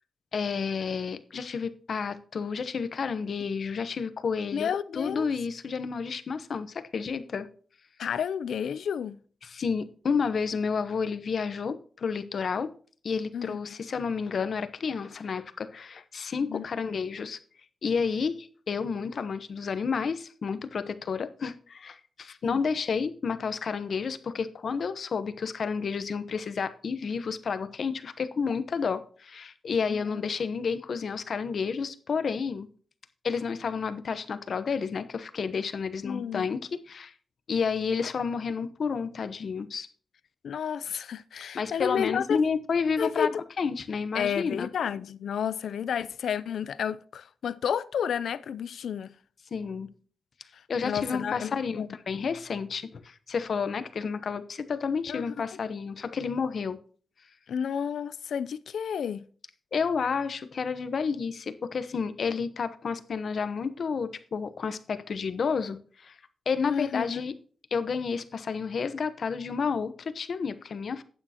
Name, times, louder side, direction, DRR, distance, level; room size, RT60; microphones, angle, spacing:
voice 1, 0.3-7.5 9.4-12.7 13.0-17.4 17.8-32.7 33.2-37.1 37.5-39.9 41.5-43.3 43.6-44.7 49.5-49.9 50.7-56.8 59.7-66.2 66.5-67.3 67.7-71.0, left 5 dB, 55° left, 1.0 m, -30 dB
voice 2, 4.5-5.3 8.0-9.2 13.3-13.6 16.4-16.7 22.4-22.6 29.9-30.3 36.0-36.5 40.4-42.4 43.0-43.3 44.1-49.1 50.5-52.0 55.1-55.6 57.5-59.3 66.6-67.2, left 8 dB, 85° left, 0.5 m, -31 dB
12.0 x 8.9 x 2.9 m
wide cardioid pair, 145°, 0 cm